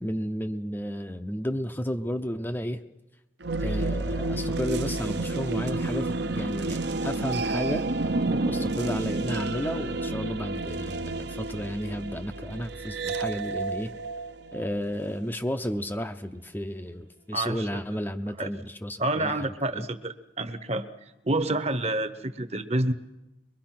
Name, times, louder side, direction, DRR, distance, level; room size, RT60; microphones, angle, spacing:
voice 1, 0.0-2.8 3.6-7.9 8.4-13.9 14.5-19.4 19.7-19.9, equal, 10° left, 6 dB, 0.6 m, -32 dB
sound 1, 3.4-15.2, right 2 dB, 55° right, 0.8 m, -30 dB
voice 2, 17.3-17.8 18.4-18.5 19.0-20.8 21.2-22.9, right 2 dB, 30° right, 10 dB, 1.0 m, -28 dB
23.0 x 23.0 x 6.0 m, 1.0 s
head